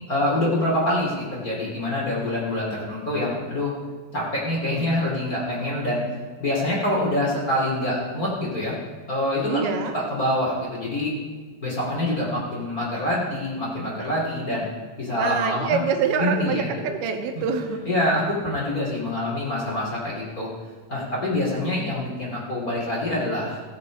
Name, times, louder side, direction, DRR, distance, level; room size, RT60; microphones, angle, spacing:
voice 1, 0.1-3.7 4.1-6.0 6.4-8.8 9.1-9.7 9.9-11.1 11.6-14.7 15.0-15.8 16.2-16.7 17.3-17.4 17.8-20.5 20.9-23.7, left 1 dB, 25° left, -5 dB, 2.6 m, -25 dB
voice 2, 9.5-9.9 15.1-17.9, right 6 dB, 85° right, 5 dB, 2.9 m, -25 dB
17.5 x 6.8 x 5.1 m, 1.5 s
omnidirectional pair, 4.4 m